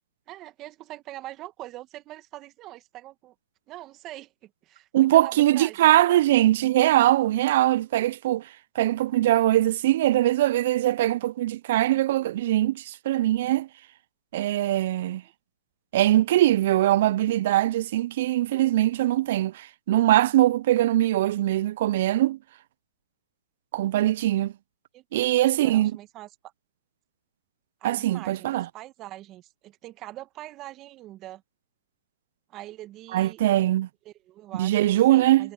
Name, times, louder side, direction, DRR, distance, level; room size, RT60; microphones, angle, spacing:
voice 1, 0.3-3.4 3.7-6.3 15.2-15.3 24.9-26.5 27.8-31.4 32.5-33.4 34.1-35.5, right 15 dB, 30° right, 2.1 m, -43 dB
voice 2, 4.9-8.5 8.8-13.7 14.3-15.2 15.9-22.4 23.7-24.5 25.1-25.9 27.8-28.7 33.1-33.9 34.5-35.5, right 14 dB, 50° right, 0.5 m, -22 dB
hypercardioid pair, 135°, 0 cm